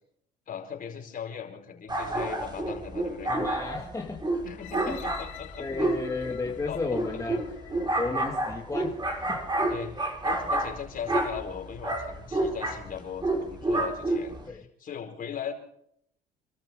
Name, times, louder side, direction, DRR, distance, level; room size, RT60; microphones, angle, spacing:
voice 1, 0.5-3.3 4.4-5.9 6.7-6.8 7.1-7.2 8.0-8.2 9.7-15.5, left 8 dB, 45° left, 3 dB, 5.1 m, -39 dB
sound 1, 1.9-14.5, right 2 dB, 20° right, 5.1 m, -30 dB
voice 2, 3.3-4.3 4.9-5.0 5.3-7.4 7.9-9.4 14.5-14.6, left 3 dB, 15° left, 0 dB, 2.2 m, -34 dB
sound 2, 4.6-9.5 10.1-10.2, left 13 dB, 75° left, 2.3 m, -49 dB
28.0 x 13.5 x 3.8 m, 0.70 s
hypercardioid pair, 70°, 20 cm